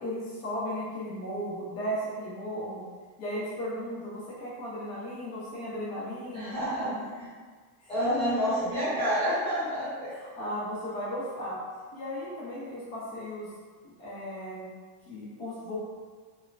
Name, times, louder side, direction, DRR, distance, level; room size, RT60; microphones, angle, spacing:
voice 1, 0.0-2.9 3.2-6.5 6.8-7.0 7.8-7.9 9.8-11.6 11.9-13.5 13.8-14.7 15.1-15.8, equal, 40° left, -8 dB, 0.7 m, -36 dB
voice 2, 6.3-6.9 7.9-10.1, equal, 15° left, -14 dB, 0.9 m, -28 dB
3.0 x 2.0 x 2.5 m, 1.5 s
cardioid pair, 175°, 41 cm